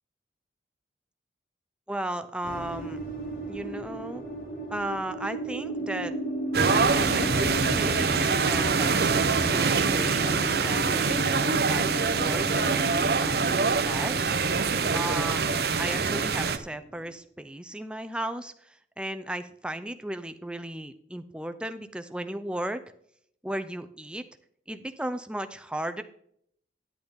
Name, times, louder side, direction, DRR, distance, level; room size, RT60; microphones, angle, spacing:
voice 1, 1.9-3.0 3.5-4.2 4.7-6.1 6.5-14.4 14.9-15.4 15.7-22.8 23.4-24.2 24.7-26.0, right 1 dB, 5° right, 9 dB, 0.5 m, -35 dB
sound 1, 2.4-17.1, right 1 dB, 50° left, 4.5 m, -35 dB
sound 2, 6.5-16.6, right 5 dB, 60° right, 0.7 m, -24 dB
10.5 x 10.5 x 3.6 m, 0.66 s
head